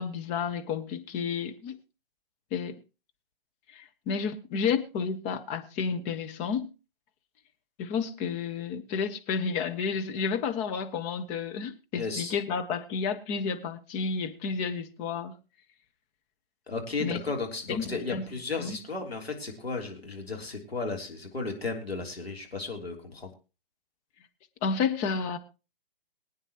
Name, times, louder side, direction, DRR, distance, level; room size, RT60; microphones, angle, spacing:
voice 1, 0.0-1.7 2.5-2.8 3.7-6.7 7.8-15.3 17.0-17.2 17.7-18.2 18.6-18.8 24.6-25.4, left 6 dB, 25° left, 7 dB, 1.2 m, -31 dB
voice 2, 11.9-12.3 16.7-23.3, left 3 dB, 85° left, 2 dB, 3.4 m, -34 dB
22.5 x 9.3 x 3.0 m, 0.30 s
figure-of-eight pair, 125°, 30 cm